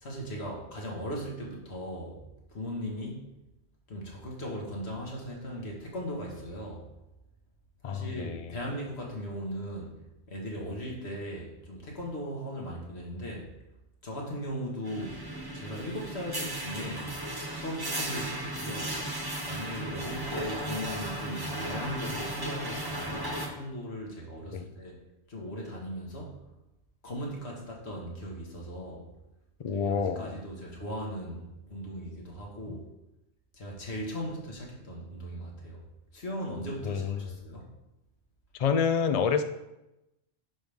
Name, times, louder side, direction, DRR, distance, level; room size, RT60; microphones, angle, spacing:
voice 1, 0.0-3.3 3.9-6.9 7.8-10.0 10.3-13.5 14.0-15.3 15.5-17.1 17.6-18.9 19.4-25.0 25.3-26.5 27.0-29.1 29.7-32.9 33.5-35.9 36.1-37.7, equal, 65° left, -2 dB, 2.0 m, -38 dB
voice 2, 7.8-8.6 24.5-24.7 29.6-30.4 36.8-37.3 38.5-39.4, left 6 dB, 50° left, 9 dB, 0.4 m, -28 dB
sound 1, 14.8-23.5, right 1 dB, 20° right, 1.2 m, -35 dB
10.5 x 5.5 x 3.5 m, 0.93 s
omnidirectional pair, 1.2 m